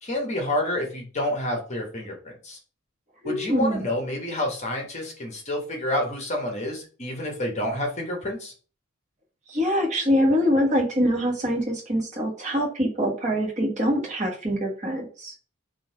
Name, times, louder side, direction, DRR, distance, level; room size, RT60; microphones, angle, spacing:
voice 1, 0.0-2.6 3.2-8.5, left 1 dB, 30° left, 1 dB, 1.0 m, -29 dB
voice 2, 3.2-3.9 9.5-15.3, equal, 35° right, -1 dB, 1.3 m, -24 dB
3.9 x 2.6 x 4.5 m, 0.38 s
head